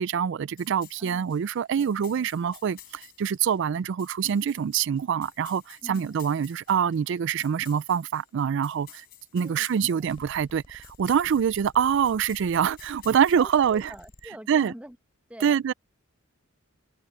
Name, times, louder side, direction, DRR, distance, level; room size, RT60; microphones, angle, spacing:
voice 1, 0.0-9.0 9.3-13.9 14.5-14.7 15.4-15.7, right 8 dB, 60° right, 0.3 m, -25 dB
sound 1, 0.6-14.1, left 13 dB, 50° left, 5.2 m, -53 dB
voice 2, 1.0-1.3 1.8-2.6 5.8-6.2 9.4-10.1 13.4-15.0 15.3-15.7, equal, 5° right, 1.2 m, -46 dB
sound 2, 10.0-14.3, left 1 dB, 30° left, 4.2 m, -52 dB
head